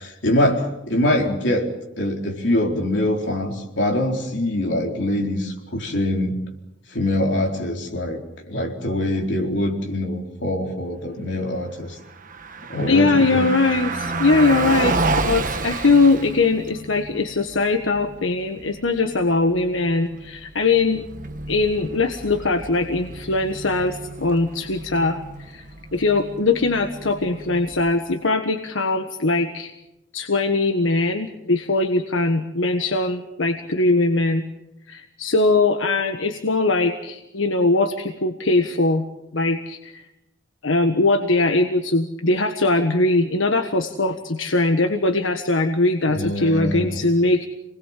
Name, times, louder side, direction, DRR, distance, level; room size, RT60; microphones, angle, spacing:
voice 1, 0.0-1.7 2.0-6.4 6.9-8.2 8.5-12.0 12.7-13.5 46.1-47.0, left 1 dB, 65° left, 1 dB, 4.3 m, -23 dB
Car passing by, 12.0-28.1, right 3 dB, 45° right, 1.4 m, -31 dB
voice 2, 12.9-21.0 21.5-25.6 25.9-29.7 30.1-34.4 34.9-39.0 39.3-40.1 40.6-47.5, left 3 dB, 85° left, 6 dB, 1.5 m, -21 dB
27.5 x 20.5 x 7.6 m, 0.91 s
head